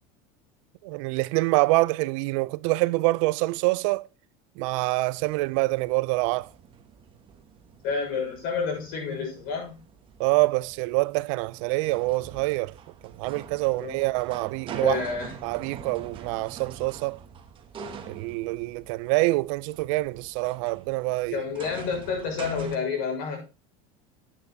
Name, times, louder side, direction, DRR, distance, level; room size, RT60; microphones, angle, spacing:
voice 1, 0.8-4.1 4.6-6.5 10.2-12.7 13.0-15.0 15.4-17.2 18.1-21.4, right 22 dB, 70° right, 0.5 m, -26 dB
sound 1, 5.2-22.8, right 7 dB, 30° right, 1.4 m, -45 dB
voice 2, 7.8-9.8 13.7-14.1 14.7-15.3 21.3-23.4, left 5 dB, 60° left, 6.2 m, -29 dB
9.4 x 9.0 x 4.0 m
cardioid pair, 150°, 17 cm